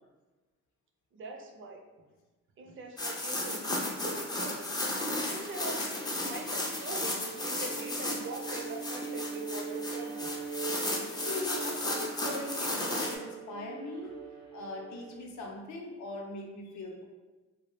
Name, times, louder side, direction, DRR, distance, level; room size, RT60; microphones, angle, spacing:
voice 1, 1.1-1.8 2.6-4.7 5.3-5.8 6.2-10.3, right 2 dB, 45° right, 2 dB, 0.5 m, -43 dB
sound 1, 3.0-13.2, left 1 dB, 15° left, 0.4 m, -34 dB
Bowed string instrument, 6.9-15.3, right 5 dB, 80° right, 0.7 m, -41 dB
voice 2, 11.2-14.1 14.5-17.0, left 2 dB, 70° left, 0 dB, 0.6 m, -40 dB
2.3 x 2.0 x 3.0 m, 1.2 s
cardioid pair, 90°, 30 cm